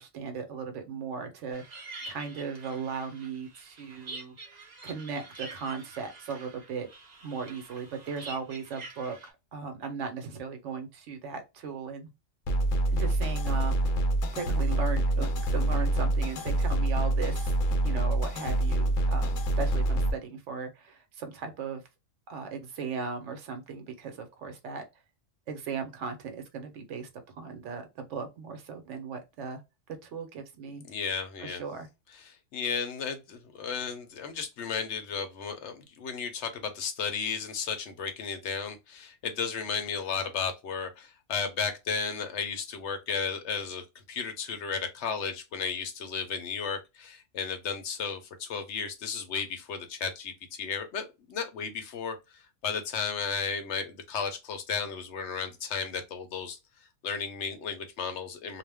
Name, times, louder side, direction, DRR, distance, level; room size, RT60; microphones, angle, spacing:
voice 1, 0.0-6.9 7.2-12.1 12.9-14.0 14.3-21.8 22.3-24.8 25.5-29.6 30.0-30.8 31.4-31.9, right 5 dB, 70° right, 0.9 m, -37 dB
sound 1, 1.5-9.3, right 3 dB, 40° right, 0.7 m, -46 dB
sound 2, 12.5-20.1, right 1 dB, 85° left, 1.0 m, -26 dB
voice 2, 30.9-31.6 32.1-56.6 57.0-58.6, left 6 dB, 70° left, 0.8 m, -34 dB
2.4 x 2.1 x 3.3 m
omnidirectional pair, 1.4 m